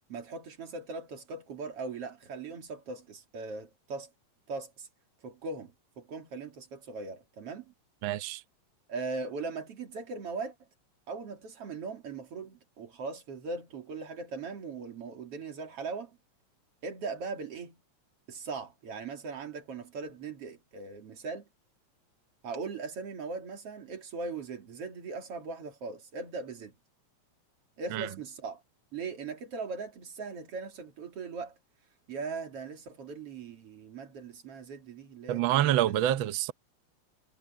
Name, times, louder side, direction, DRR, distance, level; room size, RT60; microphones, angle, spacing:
voice 1, 0.1-4.1 4.5-4.9 5.2-7.7 8.9-10.6 11.1-16.2 16.8-17.8 18.3-21.5 22.4-26.7 27.8-28.6 28.9-31.6 32.1-35.9, right 4 dB, 55° right, 3.5 m, -39 dB
voice 2, 8.0-8.4 27.9-28.1 35.3-36.5, right 12 dB, 85° right, 1.1 m, -27 dB
omnidirectional pair, 3.3 m